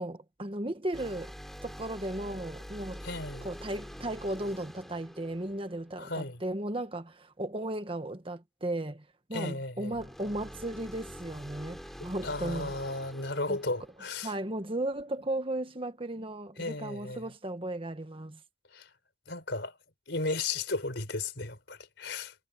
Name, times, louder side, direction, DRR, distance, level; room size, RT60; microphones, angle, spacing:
voice 1, 0.0-1.3 1.6-3.0 3.4-12.8 13.5-13.6 14.2-18.4, right 1 dB, 30° right, 1.5 m, -35 dB
sound 1, 0.9-6.4 9.9-14.7, equal, ahead, 6.4 m, -46 dB
voice 2, 3.0-3.5 6.0-6.4 9.3-9.9 12.2-14.3 16.6-17.3 18.7-18.9 19.3-19.8 20.1-22.3, left 3 dB, 65° left, 5.1 m, -35 dB
head